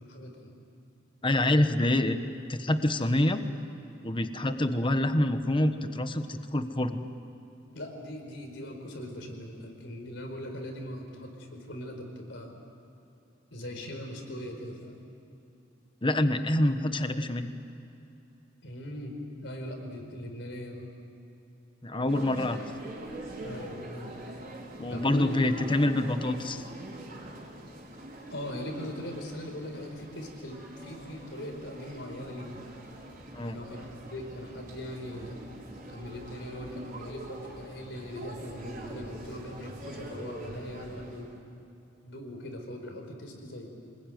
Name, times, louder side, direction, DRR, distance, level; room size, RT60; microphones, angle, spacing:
voice 1, 0.1-0.5 7.7-12.5 13.5-15.0 18.6-19.1 19.4-20.9 23.4-24.1 24.9-25.5 28.3-32.6 33.4-35.4 35.9-41.3 42.0-43.8, left 1 dB, 70° left, 3 dB, 4.8 m, -40 dB
voice 2, 1.2-2.2 2.5-3.4 4.0-7.0 16.0-17.5 21.8-22.6 24.8-26.6 33.3-33.6, left 1 dB, 25° left, 9 dB, 1.2 m, -26 dB
sound 1, 22.1-41.4, right 1 dB, 45° right, 4.6 m, -44 dB
26.5 x 21.0 x 9.3 m, 3.0 s
head